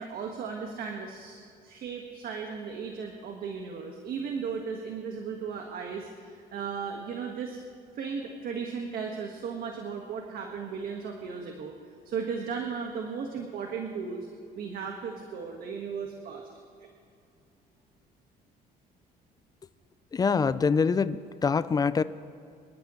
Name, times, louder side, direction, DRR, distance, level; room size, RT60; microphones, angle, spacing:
voice 1, 0.0-7.6 7.9-11.7 12.0-14.2 14.5-16.5, right 6 dB, 65° right, 2 dB, 1.6 m, -36 dB
voice 2, 20.1-22.0, left 5 dB, 20° left, 15 dB, 0.5 m, -25 dB
25.0 x 12.5 x 3.1 m, 2.4 s
cardioid pair, 110°, 17 cm